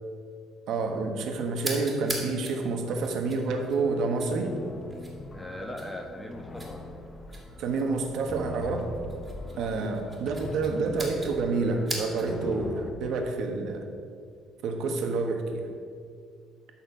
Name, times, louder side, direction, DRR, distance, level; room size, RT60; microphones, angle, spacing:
voice 1, 0.7-4.5 7.6-8.9 9.6-13.9 14.6-15.6, right 3 dB, 65° right, 4 dB, 1.3 m, -28 dB
sound 1, 1.6-12.5, right 2 dB, 15° right, 2.0 m, -42 dB
sound 2, 3.5-12.9, left 2 dB, 25° left, 0.7 m, -42 dB
voice 2, 5.3-7.0 9.5-10.2, left 1 dB, 5° left, 2 dB, 1.1 m, -40 dB
12.5 x 4.4 x 5.6 m, 2.2 s
cardioid pair, 130°, 0 cm